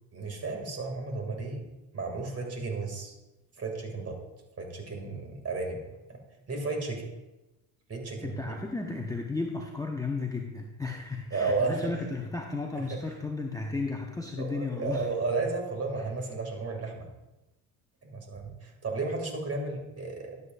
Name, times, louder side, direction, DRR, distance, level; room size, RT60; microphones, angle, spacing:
voice 1, 0.1-1.6 1.9-3.1 3.6-4.2 4.6-5.8 6.1-6.2 6.5-7.0 7.9-8.5 11.3-11.9 12.7-13.0 14.4-17.1 18.0-20.4, right 3 dB, 30° right, 2 dB, 2.7 m, -33 dB
voice 2, 8.2-15.1, left 3 dB, 5° left, 0 dB, 1.0 m, -34 dB
12.0 x 8.2 x 2.6 m, 1.0 s
supercardioid pair, 85°, 46 cm